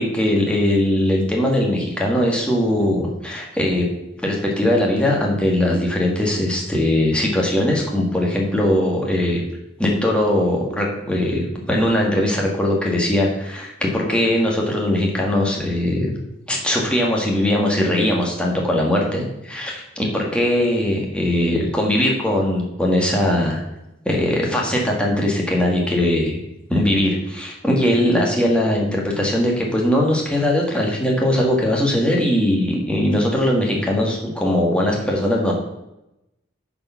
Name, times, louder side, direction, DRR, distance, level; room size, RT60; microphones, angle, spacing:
voice 1, 0.0-3.9 4.2-9.4 9.8-16.2 16.5-23.6 24.1-26.4 26.7-35.5, left 1 dB, 5° left, -2 dB, 1.9 m, -20 dB
10.5 x 4.9 x 5.7 m, 0.89 s
head